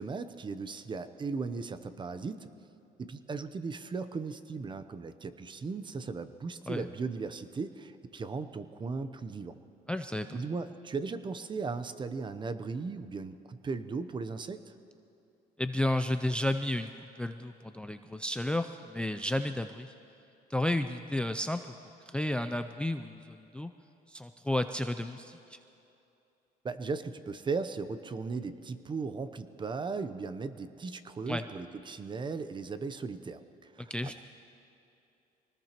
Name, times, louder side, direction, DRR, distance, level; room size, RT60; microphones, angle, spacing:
voice 1, 0.0-2.5 3.0-9.6 10.3-14.7 26.6-34.2, right 4 dB, 30° right, 12 dB, 0.7 m, -37 dB
voice 2, 9.9-10.4 15.6-16.9 17.2-19.9 20.5-21.6 22.1-23.7 24.1-25.6 31.3-31.4 33.9-34.2, left 1 dB, 5° left, 9 dB, 0.4 m, -32 dB
24.5 x 19.5 x 3.0 m, 2.7 s
cardioid pair, 110°, 17 cm